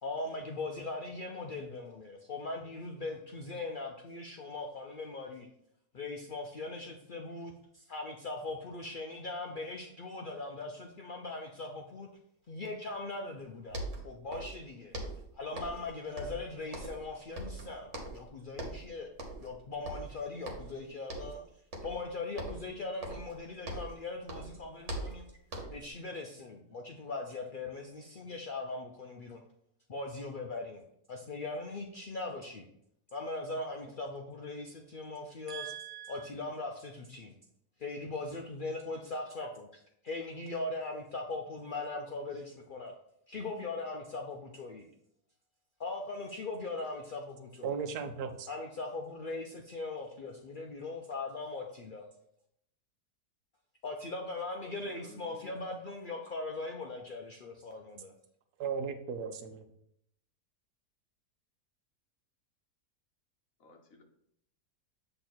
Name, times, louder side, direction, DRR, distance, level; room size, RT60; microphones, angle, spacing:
voice 1, 0.0-5.5 5.9-12.1 12.5-14.9 15.3-19.1 19.4-21.4 21.8-25.3 25.7-29.4 29.9-32.7 33.1-35.7 36.1-37.3 37.8-42.9 43.3-44.9 45.8-47.8 48.5-52.1 53.8-58.1, left 3 dB, 85° left, 2 dB, 0.4 m, -40 dB
sound 1, 13.4-13.5 13.7-14.6 14.9-15.9 16.2-17.1 17.4-18.3 18.6-18.9 19.2-19.6 19.9-20.8 21.1-21.4 21.7-22.1 22.4-24.0 24.3-25.9, right 1 dB, 50° right, 1.5 m, -41 dB
voice 2, 35.5-36.2 47.6-48.5 58.6-59.7, right 6 dB, 80° right, 7 dB, 1.2 m, -37 dB
voice 3, 54.6-55.6 63.6-64.0, left 2 dB, 60° left, 3 dB, 1.3 m, -55 dB
7.8 x 3.3 x 4.3 m, 0.73 s
omnidirectional pair, 1.7 m